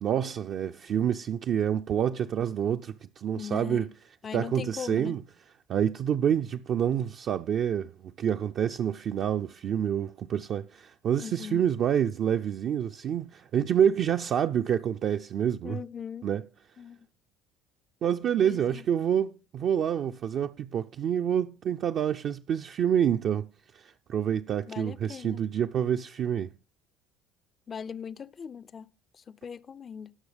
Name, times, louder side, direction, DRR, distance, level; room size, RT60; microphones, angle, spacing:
voice 1, 0.0-3.9 4.3-5.2 5.7-15.8 16.2-16.5 18.0-23.5 23.7-26.5, right 9 dB, 50° right, 0.4 m, -27 dB
voice 2, 3.3-3.9 4.2-5.2 11.2-11.6 15.6-16.3 16.8-17.1 18.4-18.8 24.7-25.4 27.7-30.2, left 7 dB, 35° left, 0.4 m, -40 dB
18.5 x 6.2 x 3.3 m
hypercardioid pair, 60°, 0 cm